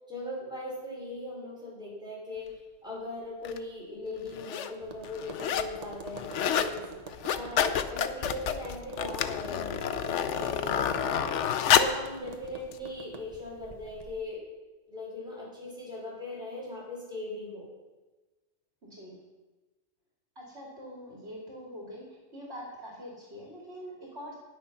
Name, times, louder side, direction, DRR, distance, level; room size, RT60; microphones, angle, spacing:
voice 1, 0.1-2.5 2.8-6.8 7.3-11.3 11.7-14.4 14.9-17.7, left 1 dB, 5° right, -6 dB, 5.5 m, -39 dB
sound 1, 3.4-3.6 4.3-4.7 5.0-5.8 6.1-6.7 7.1-12.1 12.7-12.8, left 8 dB, 70° left, 1.0 m, -28 dB
Tap, 4.8-14.1, right 3 dB, 35° right, 1.0 m, -46 dB
voice 2, 20.4-24.4, equal, 55° right, -3 dB, 2.8 m, -44 dB
18.5 x 6.5 x 5.8 m, 1.2 s
omnidirectional pair, 1.3 m